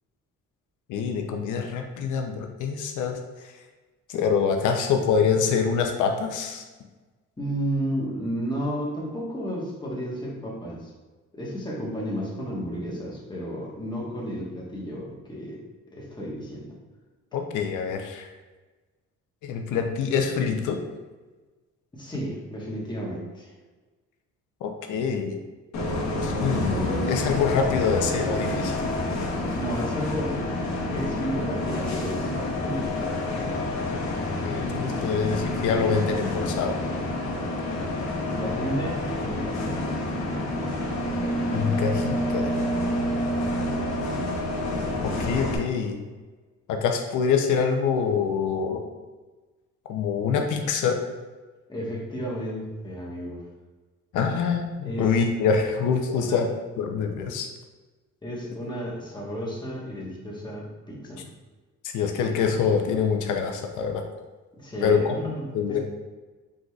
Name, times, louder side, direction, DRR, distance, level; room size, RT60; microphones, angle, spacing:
voice 1, 0.9-3.5 4.1-6.6 17.3-18.3 19.4-20.8 24.6-25.4 26.2-28.7 34.4-36.8 41.5-42.5 45.0-46.0 46.7-48.8 49.9-51.0 54.1-56.5 56.8-57.5 61.8-64.0 64.8-65.2 65.5-65.8, left 6 dB, 80° left, 4 dB, 0.6 m, -25 dB
voice 2, 7.4-10.9 11.3-15.6 15.9-16.8 21.9-23.5 29.5-30.4 30.9-33.6 38.3-39.9 51.7-53.4 54.8-55.2 56.1-56.4 58.2-61.2 64.6-65.8, equal, 15° left, -4 dB, 1.3 m, -32 dB
Bus, 25.7-45.6, left 1 dB, 65° left, 1.1 m, -28 dB
4.8 x 3.9 x 2.4 m, 1.3 s
cardioid pair, 90°, 30 cm